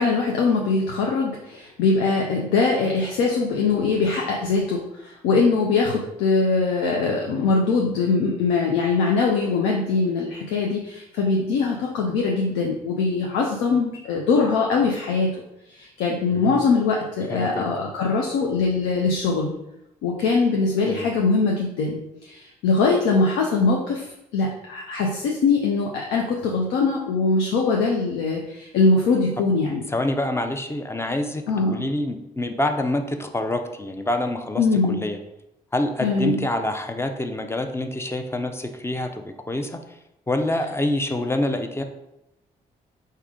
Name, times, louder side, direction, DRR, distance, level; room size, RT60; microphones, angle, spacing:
voice 1, 0.0-15.4 15.7-19.5 20.0-24.0 24.3-29.8 31.5-31.9 34.6-35.0 36.0-36.4, left 4 dB, 70° left, 0 dB, 0.5 m, -22 dB
voice 2, 16.3-16.6 17.3-17.7 20.9-21.1 29.9-35.2 35.7-39.8 40.3-41.8, left 1 dB, 15° left, 6 dB, 0.5 m, -26 dB
3.3 x 2.7 x 3.6 m, 0.87 s
hypercardioid pair, 40°, 19 cm